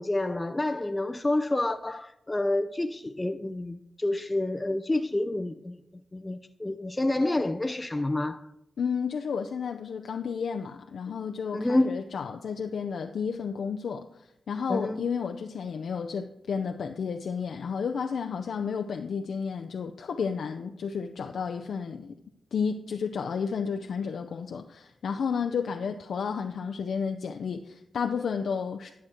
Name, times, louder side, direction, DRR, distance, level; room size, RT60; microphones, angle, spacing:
voice 1, 0.0-5.8 6.1-8.4 11.5-12.0 14.7-15.1, left 2 dB, 20° left, 0.5 m, -28 dB
voice 2, 8.8-14.1 14.5-22.2 22.5-28.9, left 6 dB, 80° left, 0.5 m, -32 dB
11.5 x 6.1 x 4.3 m
cardioid pair, 50°, 0 cm